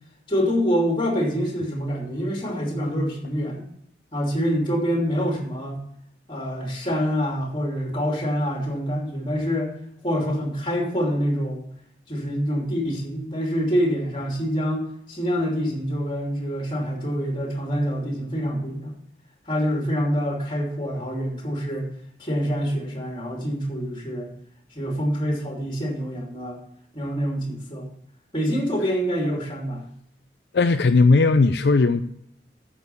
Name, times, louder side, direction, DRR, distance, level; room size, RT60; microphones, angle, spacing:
voice 1, 0.3-3.6 4.1-5.8 6.3-9.7 10.0-11.7 12.1-18.9 19.5-21.9 22.2-24.3 24.7-26.6 26.9-27.9 28.3-29.8, equal, 30° left, 2.8 m, -26 dB
voice 2, 30.5-32.0, left 3 dB, 70° left, 0.5 m, -17 dB
9.1 x 6.8 x 6.9 m
head